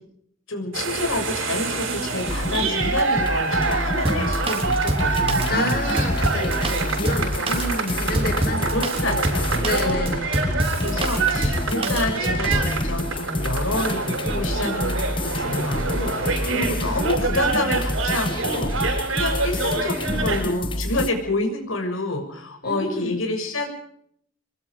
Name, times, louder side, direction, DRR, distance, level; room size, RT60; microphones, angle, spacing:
voice 1, 0.5-5.7 7.5-8.0 8.7-10.2 10.8-23.7, left 2 dB, 85° left, 3 dB, 6.7 m, -28 dB
sound 1, 0.7-20.4, right 4 dB, 80° right, 6.7 m, -27 dB
sound 2, 2.3-21.1, left 1 dB, 25° left, 1.5 m, -28 dB
Drum kit, 4.1-12.7, right 1 dB, 25° right, 3.4 m, -26 dB
voice 2, 5.5-9.3 9.6-10.9 16.4-17.1 22.6-23.3, left 1 dB, 45° left, 3 dB, 4.9 m, -30 dB
26.5 x 21.5 x 5.0 m, 0.67 s
head